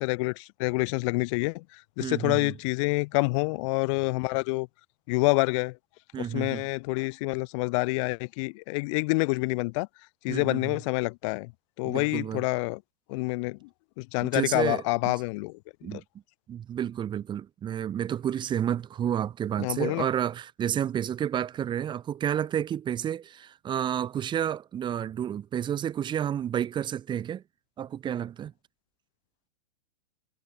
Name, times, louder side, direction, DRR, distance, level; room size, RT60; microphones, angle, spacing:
voice 1, 0.0-4.7 5.1-5.8 6.2-9.9 10.2-11.5 11.8-12.8 13.1-13.7 14.0-15.6 15.9-16.0 19.6-20.1, left 27 dB, 50° left, 3.0 m, -27 dB
voice 2, 2.0-2.5 6.1-6.6 10.3-10.7 11.8-12.4 14.2-15.2 15.8-16.0 16.5-27.4 27.8-28.5, right 9 dB, 20° right, 2.2 m, -30 dB
hypercardioid pair, 130°, 21 cm